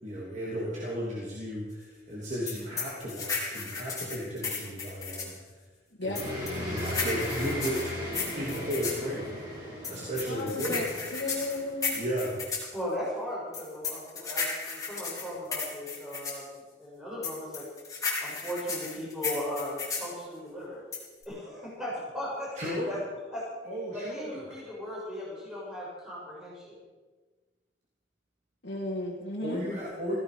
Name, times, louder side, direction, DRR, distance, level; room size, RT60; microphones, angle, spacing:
voice 1, 0.0-5.4 6.0-7.8 8.3-9.4 9.9-10.9 11.9-12.4 22.5-23.0 23.7-24.4 29.4-30.2, equal, 40° right, -5 dB, 3.2 m, -34 dB
sound 1, 2.5-5.4 6.2-9.0 9.8-12.7 13.5-16.4 17.2-20.1 20.9-21.2, left 5 dB, 20° left, 3.8 m, -34 dB
sound 2, 6.1-12.6, left 1 dB, 25° right, 5.8 m, -37 dB
voice 2, 10.3-10.9 11.1-12.0 28.6-29.6, left 2 dB, 75° left, -3 dB, 2.0 m, -34 dB
voice 3, 12.7-17.6 18.2-20.8 21.3-22.5 22.8-23.0 23.3-23.4 23.9-26.7, equal, 5° right, -7 dB, 6.5 m, -37 dB
16.5 x 16.0 x 5.2 m, 1.3 s
head